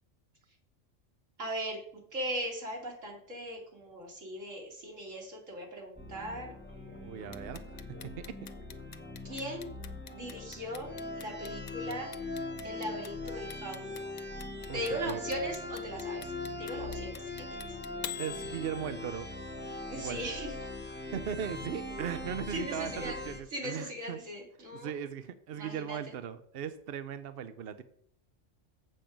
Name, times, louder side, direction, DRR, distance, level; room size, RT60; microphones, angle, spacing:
voice 1, 1.4-7.6 9.2-9.7 10.1-12.1 12.6-14.0 14.7-16.3 16.6-17.8 19.9-20.5 22.5-23.2 23.5-24.9 25.5-26.0, right 1 dB, 80° right, -1 dB, 2.8 m, -39 dB
sound 1, 6.0-23.4, left 2 dB, 10° left, 0.7 m, -41 dB
voice 2, 7.0-8.4 14.7-15.2 18.2-19.3 19.9-20.2 21.1-24.2 24.7-27.8, right 8 dB, 60° right, 11 dB, 0.7 m, -38 dB
Clock, 7.3-19.3, left 9 dB, 55° left, 0.4 m, -45 dB
7.7 x 7.3 x 5.0 m, 0.64 s
omnidirectional pair, 1.3 m